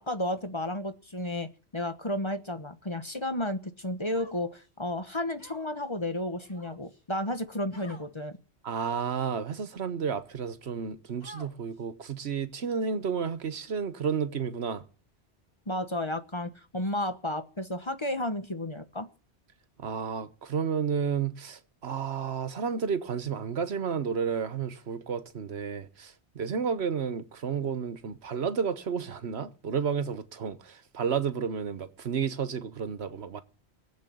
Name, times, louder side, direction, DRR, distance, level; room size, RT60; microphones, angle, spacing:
voice 1, 0.0-8.4 15.7-19.1, left 1 dB, 25° left, 1.1 m, -32 dB
Human voice, 4.1-4.7 5.4-5.8 6.4-7.0 7.7-8.1 8.7-9.1 9.8-9.9 11.2-11.8, equal, 65° left, 5.8 m, -51 dB
voice 2, 8.6-14.8 19.8-33.4, right 6 dB, 75° right, 1.3 m, -31 dB
19.5 x 7.6 x 9.3 m
omnidirectional pair, 1.1 m